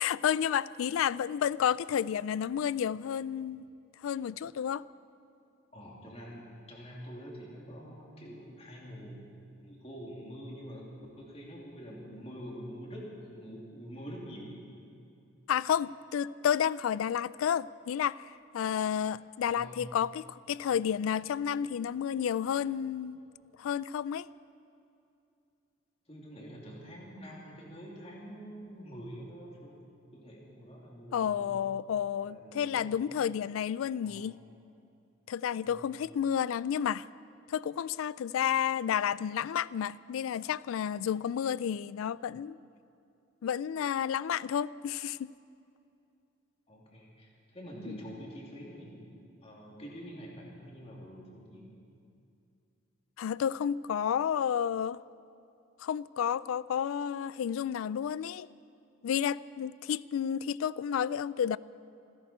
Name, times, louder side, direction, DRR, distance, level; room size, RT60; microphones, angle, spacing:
voice 1, 0.0-3.7 4.0-4.8 15.5-23.2 23.6-24.3 31.1-34.4 35.3-37.1 37.5-42.6 43.4-45.3 53.2-55.0 55.8-58.5 59.0-61.6, left 8 dB, 90° left, 20 dB, 0.3 m, -31 dB
voice 2, 5.7-9.2 9.6-10.9 11.2-14.5 19.4-19.8 26.1-29.8 30.1-31.6 32.0-33.0 34.0-34.3 35.6-35.9 46.7-49.1 49.4-51.7, equal, 30° left, -3 dB, 2.7 m, -46 dB
27.5 x 11.0 x 4.4 m, 2.6 s
head